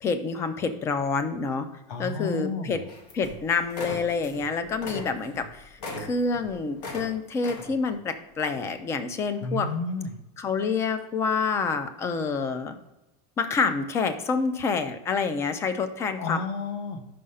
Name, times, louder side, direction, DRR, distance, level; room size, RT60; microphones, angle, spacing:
voice 1, 0.0-1.7 2.0-2.8 3.1-9.7 10.4-12.7 13.4-16.4, left 5 dB, 15° left, 10 dB, 0.4 m, -27 dB
voice 2, 1.9-2.9 9.4-10.2 16.2-17.0, left 3 dB, 45° left, 8 dB, 0.9 m, -31 dB
sound 1, 2.9-3.4 3.7-4.5 4.7-7.1 7.4-7.9 8.4-8.6, left 2 dB, 75° left, 1.7 m, -38 dB
5.6 x 5.0 x 5.5 m, 0.99 s
supercardioid pair, 175°, 20 cm